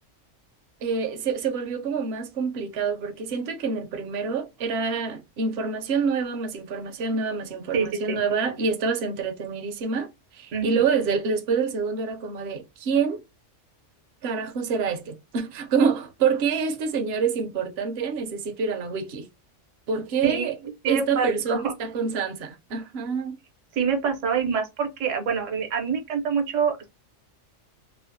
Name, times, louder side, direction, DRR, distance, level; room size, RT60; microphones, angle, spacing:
voice 1, 0.8-10.1 10.3-13.2 14.2-19.3 19.9-20.5 20.9-23.4, right 5 dB, 60° right, 0.8 m, -26 dB
voice 2, 7.7-8.2 10.5-10.8 20.2-20.5 20.8-21.7 23.7-26.9, right 6 dB, 80° right, 1.2 m, -26 dB
3.1 x 2.0 x 2.5 m
omnidirectional pair, 1.3 m